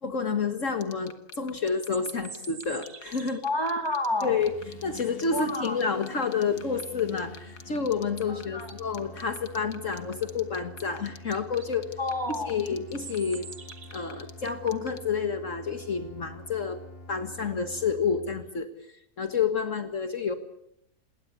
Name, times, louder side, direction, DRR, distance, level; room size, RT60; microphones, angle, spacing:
voice 1, 0.0-3.4 4.2-4.5 4.8-11.9 12.5-13.5 13.9-16.8 17.1-20.3, left 5 dB, 50° left, 9 dB, 1.9 m, -29 dB
sound 1, 0.8-15.0, left 6 dB, 80° left, 2.3 m, -46 dB
sound 2, 1.7-3.5 8.0-8.1 8.5-9.0 11.0-11.1 11.4-11.7 12.9-14.3, right 5 dB, 40° right, 1.5 m, -45 dB
voice 2, 3.4-4.4 5.3-5.8 8.3-8.7 12.0-12.7, left 1 dB, 15° left, 6 dB, 3.5 m, -30 dB
sound 3, 4.4-18.5, left 2 dB, 35° left, 2.7 m, -47 dB
28.0 x 21.0 x 8.2 m, 0.73 s
omnidirectional pair, 1.7 m